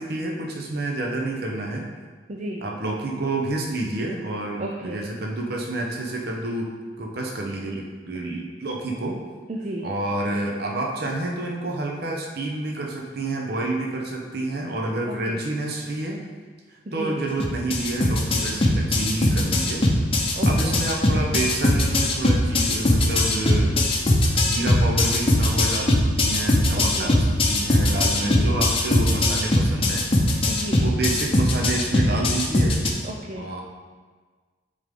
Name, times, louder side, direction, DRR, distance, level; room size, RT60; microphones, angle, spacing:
voice 1, 0.0-1.9 2.6-9.2 9.8-16.3 16.7-19.8 20.4-23.8 24.4-30.4 30.8-32.8 33.4-33.6, right 2 dB, 60° right, 0 dB, 0.9 m, -29 dB
voice 2, 2.3-2.6 4.6-5.0 9.5-9.9 15.3-15.4 16.9-17.1 20.4-20.7 26.7-27.1 28.3-28.6 30.5-30.8 33.0-33.5, right 1 dB, 40° right, 0 dB, 0.5 m, -33 dB
sound 1, 17.4-32.9, left 1 dB, 30° left, 0.7 m, -20 dB
8.6 x 3.8 x 3.7 m, 1.4 s
head